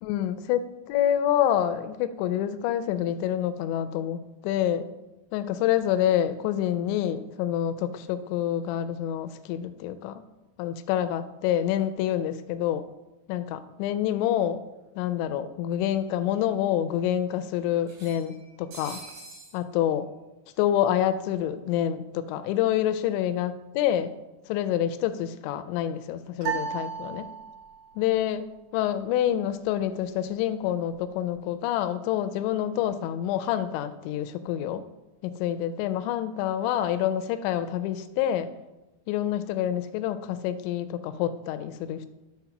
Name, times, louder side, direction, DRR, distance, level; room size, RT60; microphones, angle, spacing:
voice 1, 0.0-4.9 5.3-10.2 10.6-12.9 13.3-14.6 15.0-19.0 19.5-20.1 20.6-24.1 24.5-27.3 28.0-28.5 28.7-34.9 35.2-38.5 39.1-42.1, left 11 dB, 85° left, 11 dB, 2.7 m, -27 dB
sound 1, 14.4-14.5 14.8-14.9 16.0-16.1 16.4-16.5 17.8-19.6, right 2 dB, 80° right, 6.3 m, -45 dB
sound 2, 26.4-27.9, right 7 dB, 60° right, 3.1 m, -33 dB
12.0 x 4.3 x 5.8 m, 1.0 s
omnidirectional pair, 5.4 m